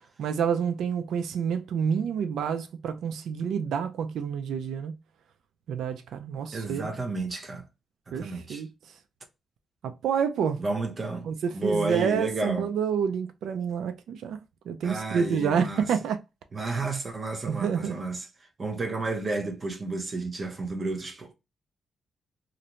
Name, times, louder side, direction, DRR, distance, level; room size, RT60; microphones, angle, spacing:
voice 1, 0.2-5.0 5.7-6.9 8.1-8.7 9.8-10.6 11.2-14.4 14.7-16.2 16.6-16.8 17.5-18.0, right 7 dB, 90° right, 0.3 m, -28 dB
voice 2, 6.5-7.6 8.2-8.6 10.6-11.3 11.5-12.7 14.8-15.9 16.5-18.2 18.6-21.3, right 3 dB, 30° right, 0.6 m, -31 dB
2.5 x 2.1 x 2.8 m
wide cardioid pair, 150°, 0 cm